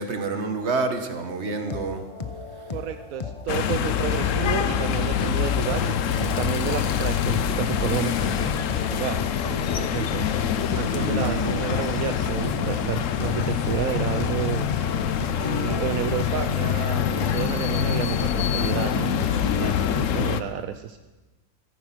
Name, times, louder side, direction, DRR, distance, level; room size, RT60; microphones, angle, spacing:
voice 1, 0.0-2.1 10.9-11.6, right 3 dB, 50° right, 7 dB, 1.7 m, -28 dB
sound 1, 1.6-20.1, left 4 dB, 30° left, 0.8 m, -34 dB
voice 2, 2.7-10.3 10.7-14.7 15.4-21.0, right 10 dB, 80° right, 9 dB, 1.1 m, -31 dB
sound 2, 3.5-20.4, left 9 dB, 70° left, 1.1 m, -25 dB
15.5 x 14.5 x 6.0 m, 1.2 s
omnidirectional pair, 1.4 m